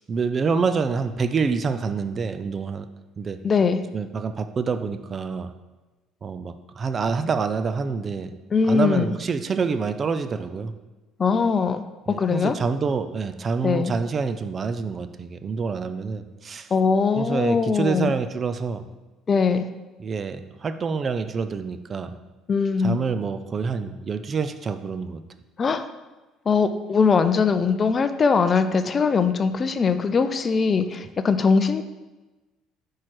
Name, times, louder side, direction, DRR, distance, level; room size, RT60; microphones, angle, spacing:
voice 1, 0.1-2.9 3.2-3.4 3.9-5.5 6.2-8.3 8.7-10.7 12.1-16.7 17.2-18.9 20.0-22.1 22.8-25.2, right 5 dB, 35° right, 10 dB, 0.5 m, -27 dB
voice 2, 3.4-3.8 8.5-9.1 11.2-12.6 13.6-13.9 16.7-18.1 19.3-19.7 22.5-23.0 25.6-25.8 26.5-31.8, left 5 dB, 35° left, 10 dB, 0.4 m, -21 dB
5.8 x 4.6 x 4.8 m, 1.2 s
supercardioid pair, 100°, 0 cm